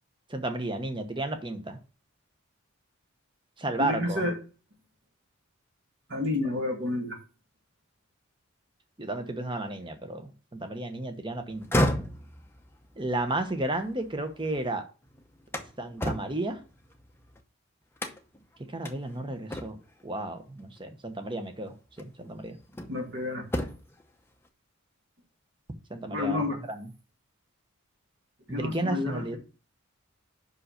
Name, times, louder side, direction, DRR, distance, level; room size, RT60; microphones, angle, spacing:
voice 1, 0.3-1.8 3.6-4.2 9.0-11.9 13.0-14.8 15.8-16.6 18.7-19.8 20.0-22.6 25.9-26.9 28.5-29.4, right 2 dB, 25° right, 1.0 m, -33 dB
voice 2, 3.8-4.4 6.1-7.2 22.9-23.4 26.1-26.6 28.5-29.2, left 2 dB, 55° right, 2.2 m, -30 dB
sound 1, 11.5-14.6 15.0-17.4 18.0-18.4 18.8-19.0 19.5-20.0 21.2-21.4 22.0-23.1 23.4-24.0, equal, 10° left, 0.7 m, -32 dB
5.6 x 5.4 x 6.5 m
head